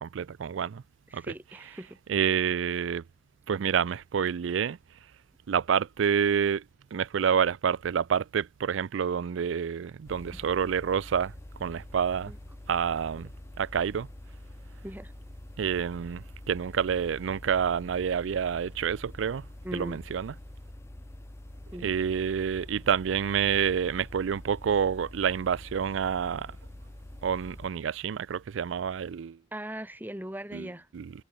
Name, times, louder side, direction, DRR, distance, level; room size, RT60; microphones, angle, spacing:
voice 1, 0.0-0.8 1.1-1.3 2.1-3.0 3.5-4.8 5.5-6.6 6.9-11.3 11.6-12.3 12.7-13.3 13.6-14.1 15.6-19.5 19.7-20.3 21.8-26.6 27.2-29.4 30.5-30.7 30.9-31.1, right 7 dB, 85° right, 0.4 m, -28 dB
voice 2, 1.1-2.0 10.3-10.4 12.3-12.4 14.8-15.1 19.6-20.0 21.7-21.9 29.5-30.9, right 1 dB, 10° right, 1.6 m, -39 dB
sound 1, 10.0-27.7, left 1 dB, 15° left, 0.5 m, -46 dB
head